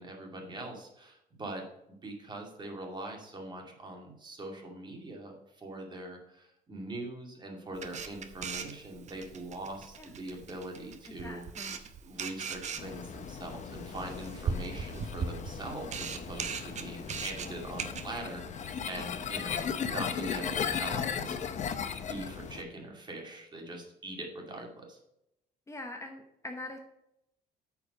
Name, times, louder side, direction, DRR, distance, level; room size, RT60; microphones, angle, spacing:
voice 1, 0.0-1.7 2.0-11.4 12.0-21.4 22.1-25.0, right 2 dB, 25° right, 1 dB, 2.2 m, -42 dB
Camera, 7.7-18.1, right 6 dB, 45° right, 0.8 m, -39 dB
voice 2, 11.0-11.8 25.7-26.8, left 2 dB, 15° left, 3 dB, 0.9 m, -43 dB
sound 1, 12.8-22.6, left 7 dB, 45° left, 0.7 m, -37 dB
8.5 x 4.7 x 6.4 m, 0.83 s
cardioid pair, 110°, 17 cm